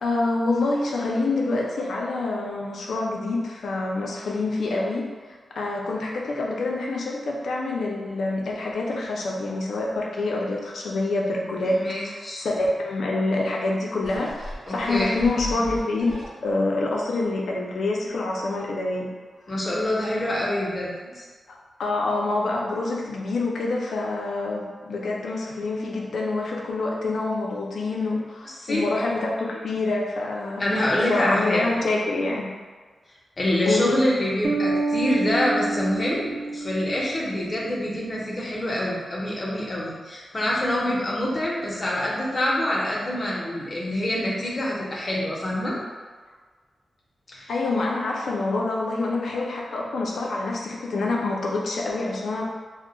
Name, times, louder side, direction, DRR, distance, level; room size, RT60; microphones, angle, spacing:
voice 1, 0.0-5.1 5.6-11.8 12.1-16.2 16.4-19.1 21.8-30.6 31.1-32.5 33.7-34.1 47.5-52.4, left 2 dB, 75° left, -2 dB, 0.5 m, -26 dB
voice 2, 11.7-12.5 14.7-15.1 19.5-21.3 28.6-28.8 30.6-31.6 33.4-45.7 47.3-47.5, left 1 dB, 35° left, -4 dB, 0.6 m, -26 dB
sound 1, 14.0-16.7 17.2-17.3, equal, 55° right, 0.7 m, -37 dB
sound 2, 34.4-37.8, right 3 dB, 30° right, 0.4 m, -28 dB
2.3 x 2.1 x 3.7 m, 1.5 s
wide cardioid pair, 150°, 0 cm